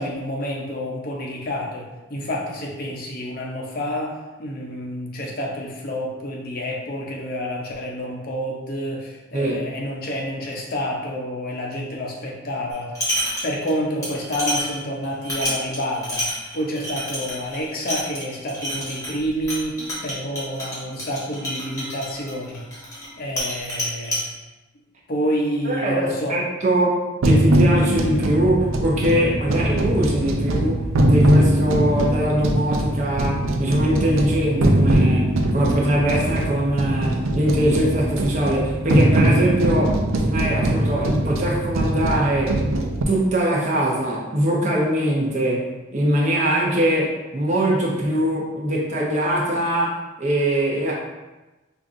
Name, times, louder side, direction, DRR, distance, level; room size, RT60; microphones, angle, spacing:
voice 1, 0.0-13.0 13.4-16.3 16.5-22.6 23.2-24.2 25.1-26.4, equal, 45° left, -1 dB, 0.5 m, -28 dB
sound 1, 12.7-13.7 14.0-23.1 23.4-24.2, equal, 15° left, 1.0 m, -29 dB
voice 2, 25.7-42.6 43.1-50.9, right 1 dB, 35° right, -3 dB, 0.7 m, -22 dB
sound 2, 27.2-43.0, right 1 dB, 85° right, 0.4 m, -21 dB
5.1 x 2.4 x 2.5 m, 1.1 s
head